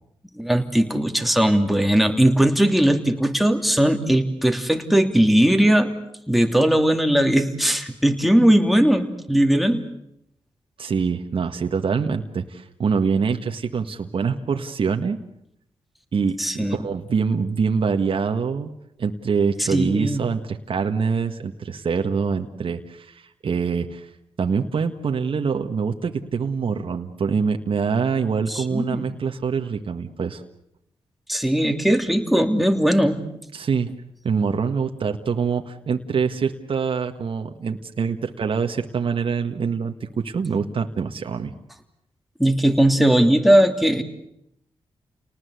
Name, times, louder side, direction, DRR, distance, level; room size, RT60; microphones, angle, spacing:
voice 1, 0.4-5.9 6.3-9.8 16.4-16.8 19.6-20.3 28.5-29.1 31.3-33.2 42.4-44.0, right 1 dB, ahead, 5 dB, 3.0 m, -19 dB
voice 2, 10.8-15.2 16.1-18.7 19.0-24.1 24.4-30.4 33.5-33.9 34.2-41.5, right 5 dB, 60° right, 5 dB, 1.7 m, -25 dB
29.5 x 19.5 x 8.2 m, 0.79 s
cardioid pair, 65°, 10 cm